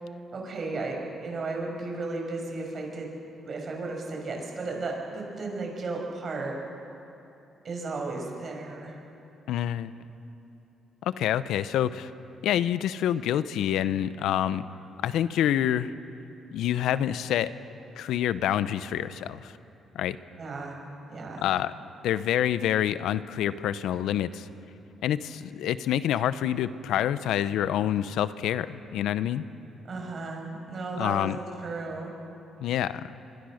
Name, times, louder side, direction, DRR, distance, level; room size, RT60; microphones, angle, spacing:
voice 1, 0.3-3.1 3.4-6.6 7.6-8.9 20.4-20.8 21.1-21.5 29.9-31.3 31.6-32.1, right 3 dB, 50° right, 0 dB, 6.5 m, -34 dB
voice 2, 9.5-9.9 11.0-12.1 12.4-14.6 15.0-15.9 16.5-17.5 18.0-19.6 19.9-20.2 21.4-21.7 22.0-24.5 25.0-29.4 31.0-31.4 32.6-33.1, left 11 dB, 85° left, 14 dB, 0.7 m, -27 dB
24.0 x 24.0 x 6.5 m, 3.0 s
cardioid pair, 90°, 0 cm